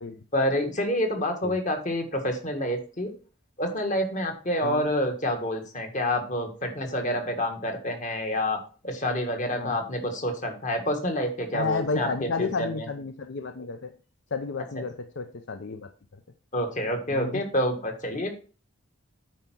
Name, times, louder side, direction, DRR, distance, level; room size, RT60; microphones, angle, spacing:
voice 1, 0.3-3.1 3.6-8.6 8.8-12.8 16.5-18.3, left 1 dB, 35° left, 4 dB, 1.7 m, -28 dB
voice 2, 11.5-13.9 14.3-15.9 17.1-17.4, left 4 dB, 60° left, 8 dB, 0.6 m, -31 dB
9.2 x 4.5 x 6.0 m, 0.39 s
head